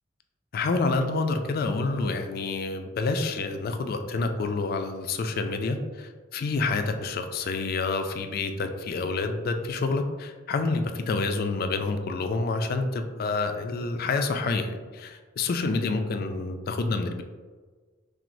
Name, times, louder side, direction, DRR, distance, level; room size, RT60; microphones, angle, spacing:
voice 1, 0.5-17.2, left 3 dB, 50° left, 7 dB, 0.3 m, -28 dB
5.8 x 2.0 x 2.6 m, 1.4 s
head